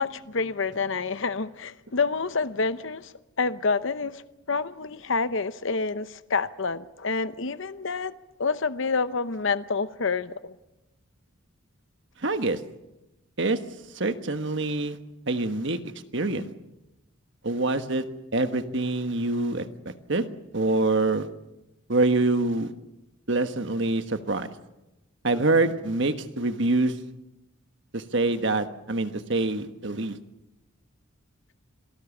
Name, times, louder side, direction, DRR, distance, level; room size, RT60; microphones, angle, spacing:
voice 1, 0.0-3.1 3.4-8.1 8.4-10.5, left 4 dB, 60° left, 0.8 m, -28 dB
voice 2, 12.2-12.6 13.4-13.6 13.9-15.0 15.3-15.8 16.1-16.5 17.4-18.0 18.3-20.3 20.5-21.3 21.9-22.7 23.3-24.5 25.2-26.9 27.9-30.2, right 2 dB, 55° right, 1.4 m, -25 dB
27.0 x 18.5 x 7.3 m
head